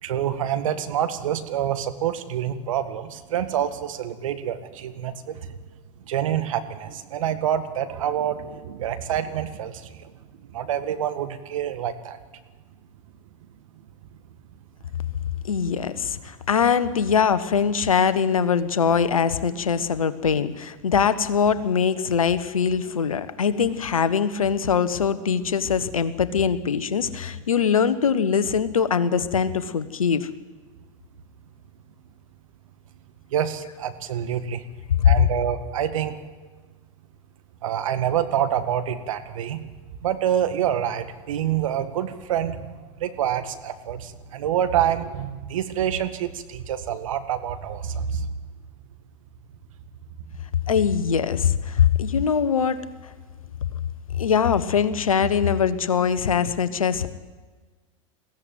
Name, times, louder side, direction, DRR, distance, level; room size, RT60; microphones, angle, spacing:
voice 1, 0.0-5.4 6.1-10.1 10.4-12.2 33.3-34.6 35.0-36.1 37.6-39.6 40.0-48.3, right 10 dB, 75° right, 10 dB, 1.8 m, -27 dB
voice 2, 15.4-30.3 35.0-35.1 50.7-52.8 54.2-57.1, left 7 dB, 90° left, 14 dB, 1.3 m, -22 dB
21.5 x 16.0 x 9.4 m, 1.4 s
hypercardioid pair, 90°, 17 cm